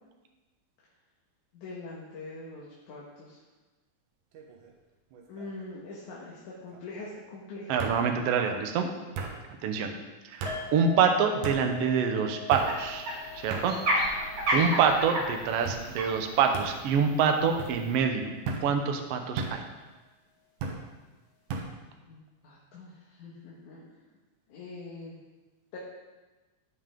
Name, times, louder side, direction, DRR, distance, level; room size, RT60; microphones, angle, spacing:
voice 1, 1.5-3.4 5.3-7.8 14.5-14.7 22.1-23.8 24.5-25.2 25.7-25.8, left 2 dB, 85° left, -5 dB, 2.9 m, -43 dB
sound 1, 4.3-4.7 5.1-5.7 6.7-6.8 7.8-8.0 9.2-9.4 10.4-10.6 11.4-11.6 12.5-12.7 13.5-13.7 14.4-14.9 15.7-15.8 16.5-16.7 17.6-17.8 18.5-18.7 19.4-19.6 20.6-20.8 21.5-21.7, right 4 dB, 85° right, 2.5 m, -35 dB
voice 2, 7.7-8.9 9.6-10.0 10.3-13.1 13.4-13.8 14.5-18.3 18.6-19.6, right 6 dB, 65° right, 5 dB, 1.7 m, -26 dB
sound 2, 10.4-17.7 17.9-18.1 18.5-18.6, left 7 dB, 40° left, 1.9 m, -44 dB
sound 3, 12.5-18.0, equal, 50° right, 3.0 m, -33 dB
16.0 x 5.5 x 3.7 m, 1.2 s
omnidirectional pair, 3.4 m